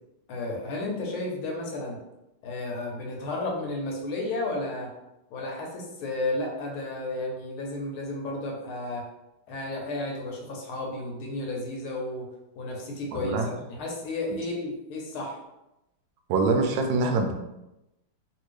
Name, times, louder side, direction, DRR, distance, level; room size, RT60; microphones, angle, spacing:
voice 1, 0.3-2.0 2.4-4.9 5.3-9.0 9.5-12.3 12.6-13.4 13.7-15.4, left 2 dB, 75° left, -1 dB, 1.6 m, -32 dB
voice 2, 13.2-13.5 16.3-17.3, right 3 dB, 75° right, 4 dB, 1.1 m, -24 dB
3.4 x 2.8 x 3.2 m, 0.93 s
omnidirectional pair, 2.4 m